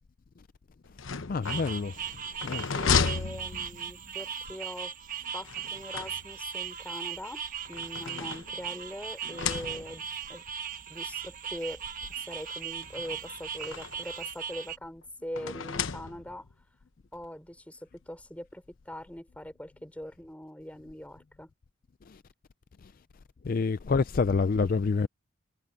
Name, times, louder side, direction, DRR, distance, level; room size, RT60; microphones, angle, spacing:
sound 1, 0.8-4.2 5.4-6.6 7.4-8.8 9.2-10.2 11.1-11.2 11.5-11.6 12.8-14.1 15.4-16.5, left 5 dB, 75° left, 1.0 m, -33 dB
voice 1, 1.3-2.2 2.4-2.7 22.1-22.2 23.4-25.1, left 4 dB, 45° left, 0.4 m, -27 dB
sound 2, 1.4-14.8, right 7 dB, 45° right, 1.3 m, -38 dB
voice 2, 2.7-4.9 5.3-10.0 10.3-10.4 10.9-11.8 12.3-16.4 17.1-21.5, equal, 5° left, 4.8 m, -42 dB
head